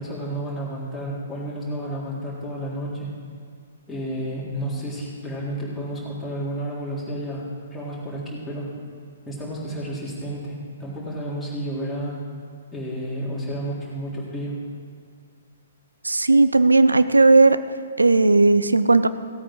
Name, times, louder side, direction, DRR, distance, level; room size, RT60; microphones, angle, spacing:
voice 1, 0.0-3.1 3.9-7.4 7.7-8.7 9.3-12.2 12.7-14.6, right 1 dB, 5° left, -8 dB, 3.6 m, -31 dB
voice 2, 16.0-17.6 18.0-19.1, right 3 dB, 80° right, 13 dB, 0.5 m, -16 dB
17.0 x 8.7 x 4.7 m, 2.3 s
figure-of-eight pair, 120°, 0 cm